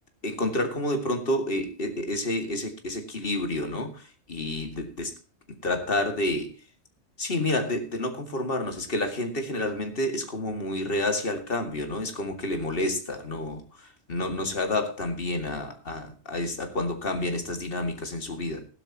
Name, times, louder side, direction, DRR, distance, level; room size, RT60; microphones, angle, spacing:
voice 1, 0.2-5.1 5.6-6.5 7.2-13.6 14.1-18.6, left 1 dB, 45° left, 6 dB, 2.4 m, -29 dB
16.5 x 12.0 x 2.9 m, 0.33 s
omnidirectional pair, 1.4 m